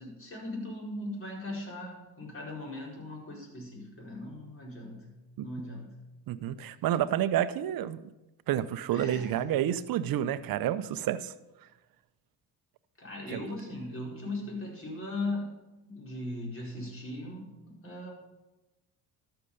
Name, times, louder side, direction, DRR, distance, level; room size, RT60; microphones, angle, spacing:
voice 1, 0.0-5.1 5.4-5.9 8.9-9.4 13.0-18.1, left 2 dB, 30° left, -2 dB, 4.5 m, -39 dB
voice 2, 6.3-8.0 8.5-11.3 13.3-13.4, right 11 dB, 60° right, 14 dB, 0.8 m, -29 dB
12.5 x 6.9 x 5.4 m, 1.0 s
supercardioid pair, 65°, 41 cm